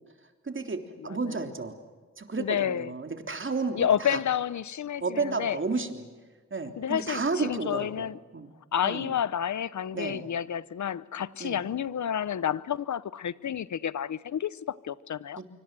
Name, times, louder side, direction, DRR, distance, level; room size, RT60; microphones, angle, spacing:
voice 1, 0.4-1.8 2.2-4.2 5.0-6.1 6.5-8.5 8.8-9.1 9.9-10.2 11.4-11.6 15.4-15.5, right 3 dB, 40° right, 3.5 m, -32 dB
voice 2, 2.4-2.9 3.7-5.6 6.8-8.2 8.7-15.4, left 9 dB, 70° left, 0.9 m, -30 dB
26.0 x 24.5 x 7.7 m
cardioid pair, 70°, 30 cm